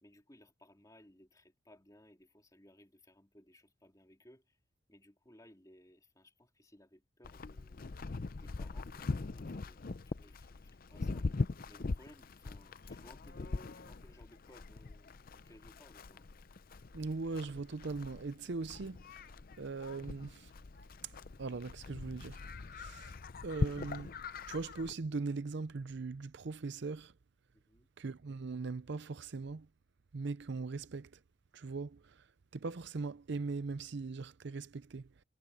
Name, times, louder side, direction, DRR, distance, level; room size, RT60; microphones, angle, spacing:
voice 1, 0.0-4.6 4.9-7.9 8.3-11.3 11.7-16.3 27.5-27.9, left 1 dB, 15° left, 2.9 m, -61 dB
Livestock farm animals working animals, 7.2-24.9, left 3 dB, 45° left, 0.5 m, -41 dB
voice 2, 16.9-19.3 19.6-20.5 21.4-23.1 23.4-24.2 24.5-27.1 28.0-29.7 30.1-31.2 31.5-32.3 32.5-35.1, right 4 dB, 55° right, 0.5 m, -40 dB
head